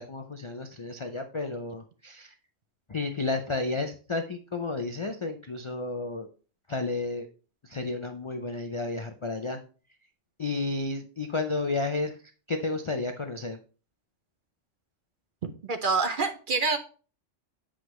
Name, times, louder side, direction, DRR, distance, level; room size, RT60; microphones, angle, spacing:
voice 1, 0.0-2.3 2.9-6.3 6.7-7.3 7.6-9.6 10.4-12.2 12.5-13.6, left 3 dB, 50° left, 6 dB, 0.3 m, -32 dB
voice 2, 15.4-16.8, right 4 dB, 55° right, 7 dB, 0.7 m, -27 dB
7.8 x 4.9 x 3.1 m, 0.38 s
omnidirectional pair, 1.3 m